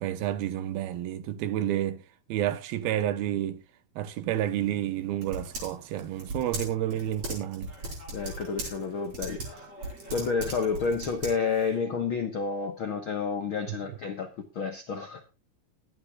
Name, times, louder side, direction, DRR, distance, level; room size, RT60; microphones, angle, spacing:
voice 1, 0.0-2.0 2.3-3.6 4.0-7.7 13.7-13.8, right 12 dB, 80° right, 2.8 m, -30 dB
Typing, 4.3-11.7, right 1 dB, 40° right, 6.1 m, -39 dB
voice 2, 8.1-9.6 10.1-14.3 14.5-15.2, left 5 dB, 70° left, 1.2 m, -30 dB
22.0 x 9.0 x 2.4 m
omnidirectional pair, 4.3 m